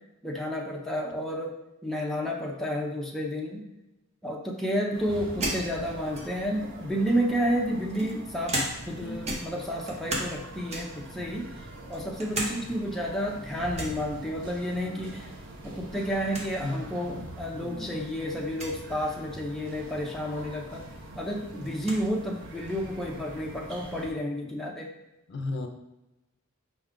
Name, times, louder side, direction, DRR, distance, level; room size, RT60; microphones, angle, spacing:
voice 1, 0.2-1.5 1.8-3.6 4.2-8.6 8.9-11.5 11.9-15.3 15.6-20.8 21.2-24.9, equal, ahead, -2 dB, 0.5 m, -31 dB
sound 1, 4.9-24.1, right 1 dB, 65° right, 0.6 m, -44 dB
sound 2, 5.4-6.6 7.4-9.0 9.2-10.4 10.7-11.1 11.6-12.6 12.9-13.0 13.7-14.0 15.4-15.8 16.1-16.2 16.3-16.5 17.3-17.4 18.5-18.8 20.5-20.6 20.9-22.0, right 1 dB, 30° right, 0.7 m, -34 dB
voice 2, 17.5-17.9 25.3-25.7, left 2 dB, 55° left, 5 dB, 0.4 m, -34 dB
5.2 x 2.3 x 3.6 m, 0.97 s
head